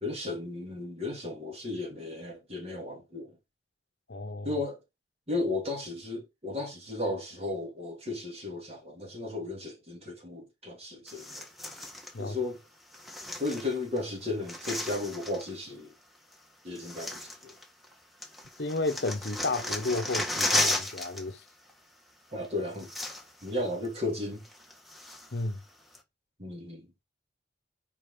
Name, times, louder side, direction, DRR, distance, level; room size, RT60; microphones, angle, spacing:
voice 1, 0.0-3.4 4.4-4.8 5.3-11.5 12.2-12.6 13.4-15.9 16.6-17.5 22.3-22.9 23.4-24.4 26.4-26.9, left 2 dB, 35° right, 2.9 m, -34 dB
voice 2, 4.1-4.5 12.1-12.4 18.6-21.4 25.3-25.6, left 2 dB, 65° left, 0.9 m, -32 dB
sound 1, 11.1-12.1 12.9-14.0 14.2-15.5 16.3-16.4 16.7-17.9 18.2-21.2 21.5-21.7 22.4-22.5 22.7-23.5 23.8-23.9 24.4-25.4 25.9-26.0, left 1 dB, ahead, 1.5 m, -34 dB
5.3 x 5.1 x 5.0 m
head